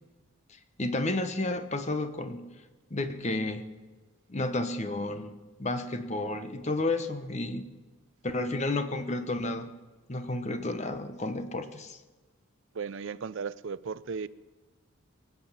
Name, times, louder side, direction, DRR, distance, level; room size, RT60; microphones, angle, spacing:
voice 1, 0.8-2.5 2.9-3.7 4.3-7.6 8.2-9.7 10.1-12.0, left 2 dB, 30° left, 9 dB, 1.0 m, -31 dB
voice 2, 12.7-14.3, right 5 dB, 60° right, 17 dB, 0.4 m, -35 dB
22.0 x 8.2 x 7.3 m, 1.2 s
head